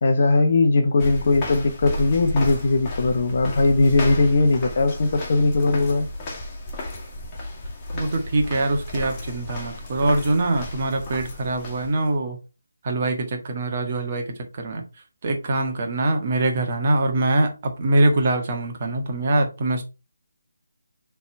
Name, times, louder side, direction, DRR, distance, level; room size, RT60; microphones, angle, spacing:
voice 1, 0.0-6.1, left 3 dB, 45° left, 0.9 m, -19 dB
sound 1, 1.0-12.1, left 1 dB, 20° left, 2.0 m, -33 dB
voice 2, 7.9-12.4 12.8-14.8 15.2-19.8, right 2 dB, 35° right, 1.5 m, -23 dB
7.0 x 3.6 x 4.5 m
figure-of-eight pair, 150°, 0 cm